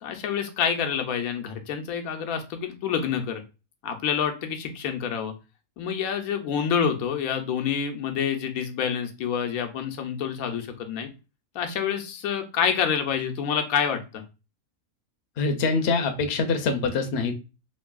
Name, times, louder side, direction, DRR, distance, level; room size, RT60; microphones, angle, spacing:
voice 1, 0.0-3.4 3.8-5.3 5.8-11.1 11.5-14.2, left 7 dB, 90° left, 5 dB, 1.1 m, -27 dB
voice 2, 15.4-17.5, left 4 dB, 60° left, 7 dB, 0.7 m, -25 dB
3.1 x 2.6 x 2.2 m, 0.29 s
omnidirectional pair, 1.4 m